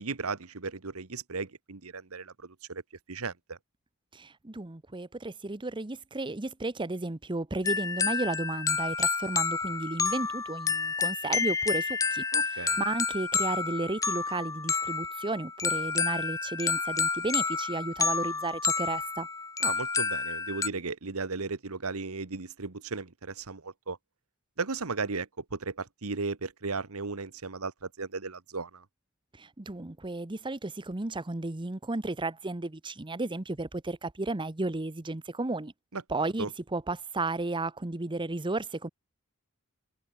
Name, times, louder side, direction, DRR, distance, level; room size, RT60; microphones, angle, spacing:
voice 1, 0.0-2.8 3.1-3.6 12.3-12.8 19.6-24.0 24.6-28.8 35.9-36.5, right 4 dB, 80° right, 1.3 m, -36 dB
voice 2, 4.1-19.3 29.4-35.7 36.1-36.5 36.7-38.9, right 2 dB, 20° right, 0.9 m, -33 dB
sound 1, 7.6-20.7, left 5 dB, 15° left, 0.4 m, -30 dB
open air
head